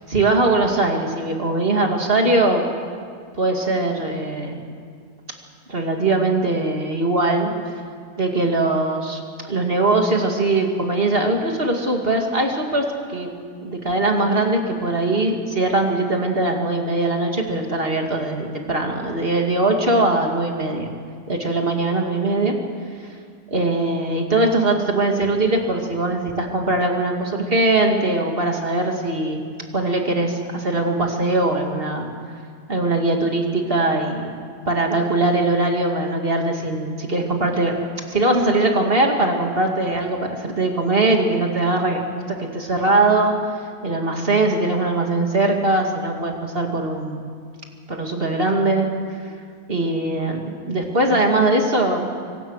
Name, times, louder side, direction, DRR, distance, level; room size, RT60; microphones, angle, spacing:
voice 1, 0.0-2.6 3.4-4.6 5.7-7.5 8.2-9.2 9.5-13.3 13.6-20.9 21.3-22.6 23.0-23.1 23.5-29.4 29.7-32.1 32.7-34.3 34.7-37.7 38.1-42.0 42.3-43.3 43.8-47.2 47.9-48.9 49.7-52.1, right 2 dB, 35° right, 2 dB, 2.5 m, -21 dB
24.5 x 24.5 x 6.5 m, 2.1 s
omnidirectional pair, 1.7 m